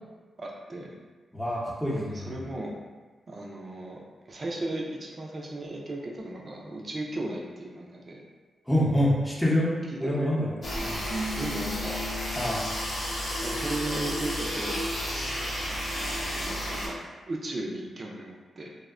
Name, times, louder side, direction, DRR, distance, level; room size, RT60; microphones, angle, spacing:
voice 1, 0.4-0.9 2.0-2.7 3.3-4.0 4.3-8.2 9.9-10.1 11.3-12.0 13.4-14.8 15.6-17.0 17.3-18.7, right 1 dB, 50° right, -1 dB, 0.5 m, -36 dB
voice 2, 1.3-2.3 8.7-11.0 12.4-12.7, equal, 5° left, -5 dB, 0.7 m, -26 dB
sound 1, 10.6-16.9, equal, 60° left, 0.7 m, -32 dB
Keyboard (musical), 11.1-13.1, left 1 dB, 80° right, 0.7 m, -38 dB
2.7 x 2.1 x 2.4 m, 1.3 s
supercardioid pair, 45°, 0 cm